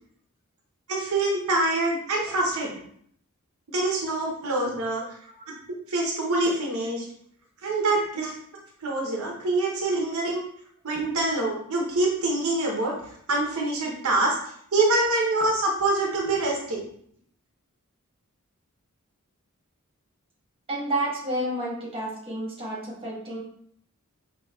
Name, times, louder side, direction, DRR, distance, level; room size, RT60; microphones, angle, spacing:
voice 1, 0.9-2.7 3.7-5.0 5.9-7.0 7.6-8.3 8.8-10.4 10.8-12.9 13.3-14.3 14.7-16.8, right 2 dB, 75° right, -1 dB, 0.8 m, -25 dB
voice 2, 20.7-23.4, right 1 dB, 25° right, -5 dB, 1.3 m, -30 dB
5.5 x 2.8 x 2.3 m, 0.65 s
head